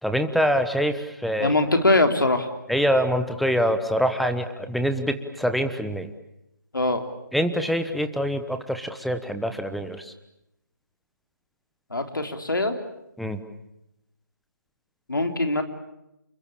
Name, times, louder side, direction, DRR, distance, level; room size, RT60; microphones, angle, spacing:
voice 1, 0.0-1.6 2.7-6.1 7.3-10.1 13.2-13.4, equal, ahead, 8 dB, 1.1 m, -25 dB
voice 2, 1.4-2.5 6.7-7.0 11.9-12.8 15.1-15.6, left 2 dB, 85° left, 6 dB, 3.6 m, -22 dB
29.5 x 22.0 x 8.6 m, 0.87 s
figure-of-eight pair, 155°, 11 cm